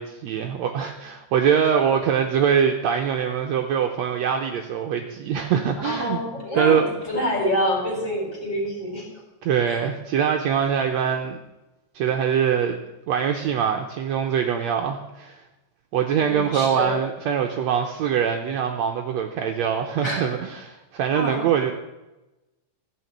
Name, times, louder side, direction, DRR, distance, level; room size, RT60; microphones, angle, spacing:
voice 1, 0.0-6.2 6.5-6.8 9.4-11.4 12.0-12.8 13.1-15.4 15.9-21.7, right 8 dB, 70° right, 3 dB, 1.8 m, -23 dB
voice 2, 5.8-9.1 9.7-9.8 16.1-17.0 20.0-20.4 21.1-21.4, equal, 35° left, -1 dB, 5.2 m, -27 dB
15.5 x 6.7 x 9.2 m, 1.0 s
omnidirectional pair, 3.8 m